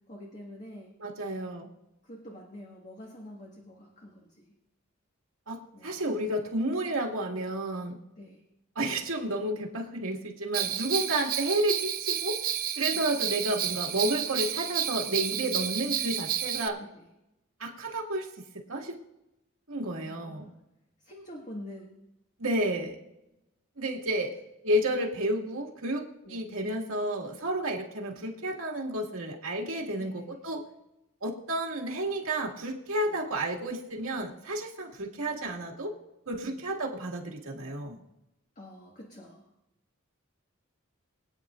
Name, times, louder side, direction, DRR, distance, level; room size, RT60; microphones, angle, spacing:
voice 1, 0.1-0.9 2.0-4.5 5.7-6.0 8.2-8.4 12.9-13.0 16.8-17.1 20.0-20.5 21.0-21.9 26.2-26.5 30.0-30.3 33.1-33.2 36.5-36.6 38.5-39.4, left 1 dB, 40° left, -1 dB, 1.7 m, -46 dB
voice 2, 1.0-1.7 5.5-8.0 8.8-12.4 12.8-16.8 17.6-18.3 18.7-19.0 19.7-20.5 22.4-23.0 23.8-24.3 24.6-30.6 31.2-35.9 36.3-38.0, right 1 dB, 85° right, 0 dB, 2.1 m, -31 dB
Bell, 10.5-16.7, right 10 dB, 45° right, 0.7 m, -31 dB
24.0 x 9.2 x 2.5 m, 0.90 s
head